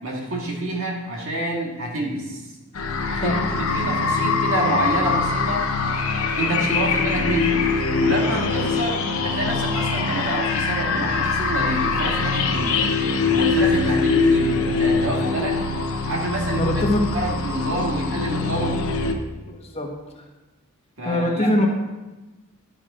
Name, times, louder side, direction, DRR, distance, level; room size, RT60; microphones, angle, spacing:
voice 1, 0.0-2.4 3.1-5.7 6.4-7.6 8.0-12.8 13.3-15.6 16.1-16.7 17.1-18.8 21.0-21.5, right 1 dB, 65° right, -1 dB, 2.1 m, -27 dB
sound 1, 2.7-19.1, left 4 dB, 85° left, 0.9 m, -23 dB
voice 2, 3.1-3.6 16.5-17.1 19.6-19.9 21.0-21.7, left 1 dB, 30° left, 1 dB, 1.2 m, -22 dB
11.0 x 5.2 x 5.0 m, 1.1 s
head